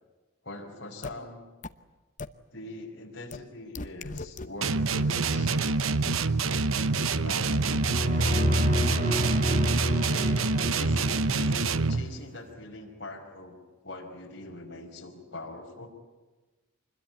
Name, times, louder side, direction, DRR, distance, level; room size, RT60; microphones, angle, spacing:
voice 1, 0.4-1.4 2.5-5.6 7.2-7.7 10.1-15.9, left 2 dB, 55° left, -2 dB, 5.0 m, -42 dB
sound 1, 1.0-1.1 1.6-1.7 2.2-2.3 3.3-3.4 3.8-4.5 4.9-5.0, left 3 dB, 40° left, 0.8 m, -36 dB
sound 2, 4.6-12.1, right 4 dB, 85° right, 1.0 m, -26 dB
sound 3, 7.6-11.9, equal, 40° right, 5.5 m, -28 dB
26.0 x 21.5 x 9.2 m, 1.2 s
head